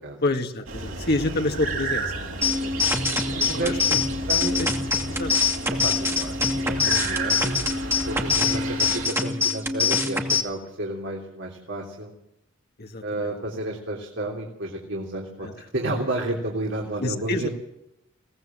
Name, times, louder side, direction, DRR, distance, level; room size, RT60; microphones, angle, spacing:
voice 1, 0.2-2.8 3.1-4.7 5.1-5.3 6.8-7.0 12.8-13.3 15.4-15.6 17.0-17.5, left 2 dB, 55° left, 4 dB, 2.1 m, -29 dB
sound 1, 0.7-9.1, right 3 dB, 80° right, 4.0 m, -33 dB
sound 2, 2.4-10.4, left 4 dB, 15° right, 2.4 m, -24 dB
voice 2, 3.5-3.8 4.3-4.5 5.8-7.7 8.1-12.1 13.0-15.5 15.7-17.5, right 1 dB, 65° right, 0 dB, 3.4 m, -31 dB
23.0 x 18.0 x 7.7 m, 0.85 s
head